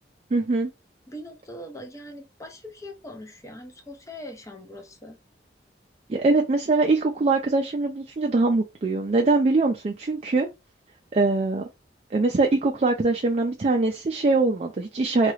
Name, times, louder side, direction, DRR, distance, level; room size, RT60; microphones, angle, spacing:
voice 1, 0.3-0.7 6.1-10.5 11.1-11.7 12.1-15.3, right 3 dB, 35° right, 0.4 m, -22 dB
voice 2, 1.1-5.2, left 1 dB, 15° left, 0.5 m, -41 dB
2.9 x 2.3 x 3.1 m
head